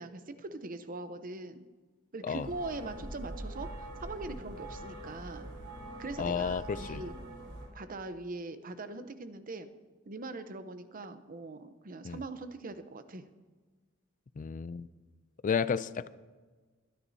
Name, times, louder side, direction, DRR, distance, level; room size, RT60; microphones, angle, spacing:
voice 1, 0.0-1.7 2.1-5.5 6.0-7.1 7.7-9.7 10.1-13.2, right 2 dB, 45° right, 10 dB, 0.8 m, -42 dB
sound 1, 2.4-7.7, right 1 dB, 75° right, 4.6 m, -43 dB
voice 2, 6.2-7.0 12.0-12.2 14.4-14.9 15.4-16.1, left 6 dB, 40° left, 15 dB, 0.3 m, -32 dB
23.0 x 10.0 x 2.8 m, 1.4 s
head